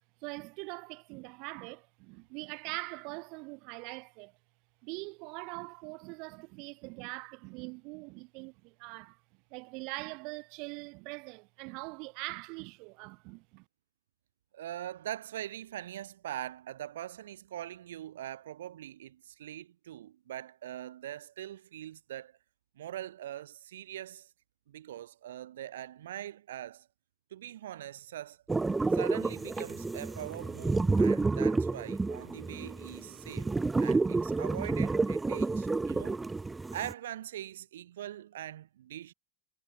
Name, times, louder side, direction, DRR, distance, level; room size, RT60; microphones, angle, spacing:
voice 1, 0.2-4.3 4.8-9.2 9.5-13.6, right 30 dB, 50° right, 1.6 m, -42 dB
voice 2, 14.5-22.4 22.8-24.3 24.7-26.9 27.3-28.4 28.9-33.5 33.8-36.2 36.7-39.1, right 12 dB, 65° right, 2.4 m, -42 dB
sound 1, 28.5-36.9, right 3 dB, 10° right, 0.3 m, -30 dB
figure-of-eight pair, 80°, 0 cm